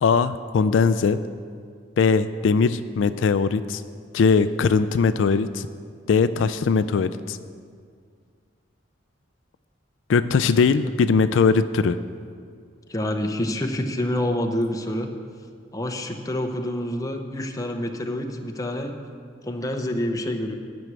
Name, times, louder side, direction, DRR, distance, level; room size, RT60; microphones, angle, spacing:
voice 1, 0.0-1.2 2.0-3.8 4.1-5.7 6.1-7.4 10.1-12.0, left 5 dB, 80° left, 12 dB, 0.4 m, -20 dB
voice 2, 12.9-15.1 15.7-18.9 19.4-20.6, left 1 dB, 20° left, 4 dB, 0.8 m, -27 dB
11.0 x 6.2 x 8.1 m, 2.1 s
head